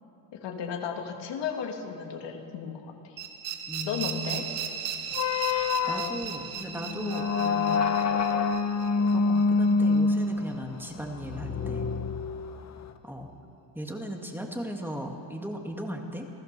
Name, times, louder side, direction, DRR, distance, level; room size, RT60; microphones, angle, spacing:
voice 1, 0.4-3.1 3.9-4.4, left 7 dB, 70° left, 2 dB, 2.6 m, -34 dB
sound 1, 3.2-10.0, right 8 dB, 75° right, 2.2 m, -37 dB
voice 2, 3.7-4.5 5.9-7.9 9.0-11.9 13.0-13.3 13.7-16.3, right 1 dB, 5° right, 2 dB, 2.1 m, -37 dB
sound 2, 5.1-12.9, left 4 dB, 35° left, 1.2 m, -26 dB
28.5 x 16.0 x 6.9 m, 2.7 s
cardioid pair, 120°, 44 cm